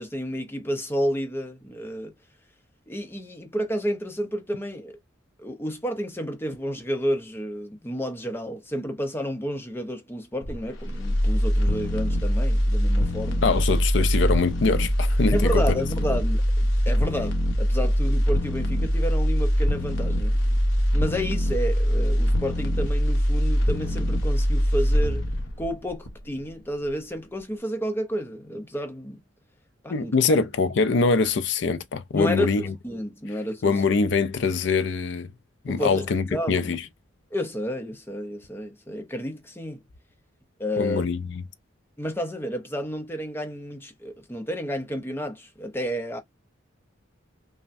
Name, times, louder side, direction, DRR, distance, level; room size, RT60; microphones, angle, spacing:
voice 1, 0.0-2.1 2.9-5.0 5.4-13.4 15.3-17.3 17.6-20.6 20.9-25.3 25.6-29.2 29.8-30.4 32.1-33.7 35.7-36.7 37.3-39.8 40.6-41.0 42.0-46.2, equal, 10° left, 0.6 m, -31 dB
sound 1, 10.4-26.5 26.9-27.0, equal, 80° left, 1.0 m, -23 dB
voice 2, 13.4-15.6 29.9-32.7 33.6-35.3 35.6-36.8 40.8-41.2, left 4 dB, 60° left, 0.5 m, -23 dB
5.3 x 2.1 x 2.6 m
head